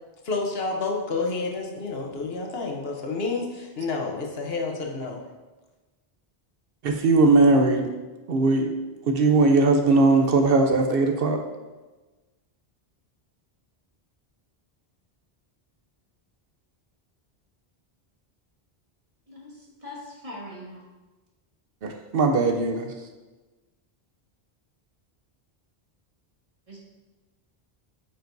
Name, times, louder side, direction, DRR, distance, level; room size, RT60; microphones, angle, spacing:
voice 1, 0.2-5.2, left 3 dB, 75° left, 1 dB, 1.2 m, -29 dB
voice 2, 6.8-7.9 8.3-8.7 9.1-11.4 21.8-22.9, right 3 dB, 70° right, 4 dB, 0.9 m, -19 dB
voice 3, 19.3-20.8 26.7-26.8, left 1 dB, 35° right, -4 dB, 1.6 m, -41 dB
8.9 x 5.1 x 2.7 m, 1.2 s
omnidirectional pair, 1.0 m